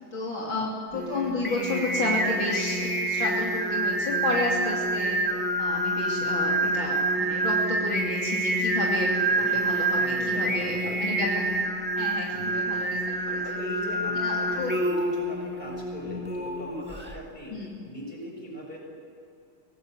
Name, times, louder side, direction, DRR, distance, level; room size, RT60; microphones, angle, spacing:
voice 1, 0.1-5.2 5.6-9.1 9.4-11.6 12.0-13.4 14.2-14.7 17.5-17.8, left 2 dB, 70° left, -3 dB, 3.7 m, -31 dB
Singing, 0.9-17.2, right 1 dB, 5° right, 1.6 m, -27 dB
voice 2, 9.2-9.6 10.0-11.0 11.3-11.4 12.3-12.6 13.1-18.9, equal, 25° left, -1 dB, 7.3 m, -40 dB
24.0 x 18.0 x 9.5 m, 2.6 s
omnidirectional pair, 2.3 m